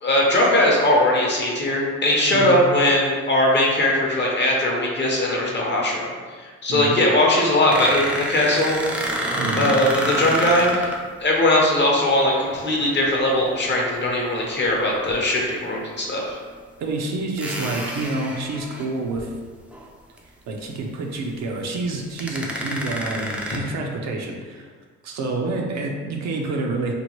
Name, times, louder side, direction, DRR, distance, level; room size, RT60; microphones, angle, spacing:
voice 1, 0.0-8.8 9.6-10.9 11.2-16.4, left 1 dB, 35° left, -2 dB, 0.7 m, -20 dB
sound 1, 7.7-11.0 13.1-13.3 15.0-15.1 16.0-16.1 17.4-19.2 19.7-19.9 20.2-20.3 21.8-21.9 22.2-23.6, equal, 5° right, 0.4 m, -28 dB
voice 2, 9.3-9.7 16.8-19.3 20.5-24.7 25.0-26.9, right 2 dB, 60° right, 1 dB, 0.5 m, -28 dB
2.9 x 2.1 x 3.0 m, 1.5 s
cardioid pair, 90°, 30 cm